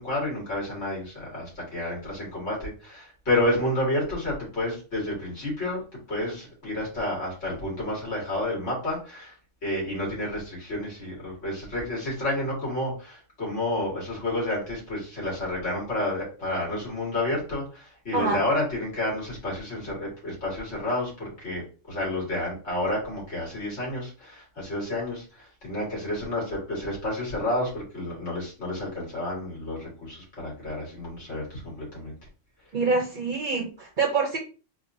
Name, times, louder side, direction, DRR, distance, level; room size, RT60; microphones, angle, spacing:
voice 1, 0.0-9.4 9.6-32.1, left 1 dB, 70° left, -4 dB, 2.3 m, -30 dB
voice 2, 32.7-34.4, right 4 dB, 50° right, 2 dB, 0.7 m, -25 dB
4.2 x 2.5 x 2.6 m, 0.35 s
omnidirectional pair, 1.3 m